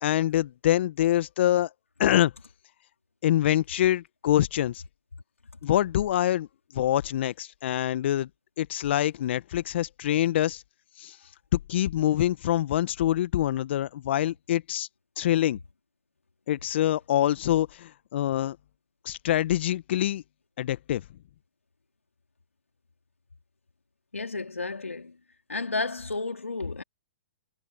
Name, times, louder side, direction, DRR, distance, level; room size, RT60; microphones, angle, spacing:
voice 1, 0.0-1.7 2.0-2.3 3.2-4.8 5.6-6.5 6.7-8.3 8.6-10.6 11.0-11.2 11.5-14.9 15.2-15.6 16.5-18.6 19.0-20.2 20.6-21.0, left 12 dB, 55° left, 1.1 m, -25 dB
voice 2, 24.1-25.1 25.5-26.8, left 3 dB, 90° left, 3.7 m, -32 dB
hypercardioid pair, 120°, 7 cm